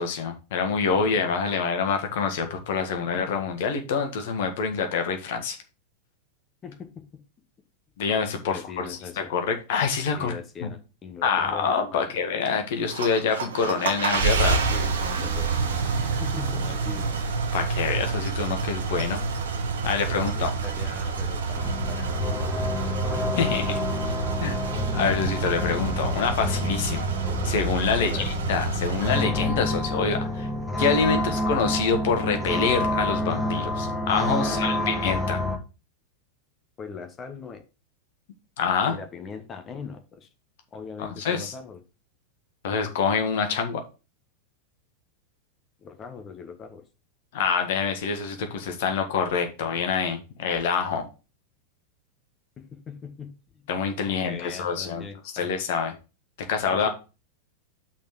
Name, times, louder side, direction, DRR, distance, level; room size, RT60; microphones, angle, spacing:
voice 1, 0.0-5.6 8.0-10.3 10.6-10.7 11.2-14.6 17.5-19.2 19.8-20.5 23.4-23.8 24.4-24.6 24.9-27.1 27.4-30.5 30.8-35.4 38.6-38.9 41.0-41.5 42.6-43.8 47.3-51.1 53.7-55.0 55.3-55.9 56.5-56.9, left 5 dB, 55° left, 5 dB, 1.6 m, -26 dB
voice 2, 6.6-7.0 8.5-9.3 10.2-12.1 14.7-15.5 16.2-17.1 20.3-23.0 28.0-28.3 31.3-31.4 34.4-35.0 36.8-37.6 38.9-40.3 40.7-41.8 45.8-46.8 52.6-53.6 54.2-55.5 56.7-56.9, left 5 dB, 25° left, 6 dB, 1.4 m, -40 dB
sound 1, 12.8-29.2, right 5 dB, 65° right, 1.1 m, -28 dB
sound 2, 14.1-18.6, equal, 30° right, 2.1 m, -46 dB
sound 3, 21.6-35.6, left 2 dB, 5° left, 1.5 m, -28 dB
5.9 x 4.3 x 6.0 m, 0.31 s
figure-of-eight pair, 90°, 0 cm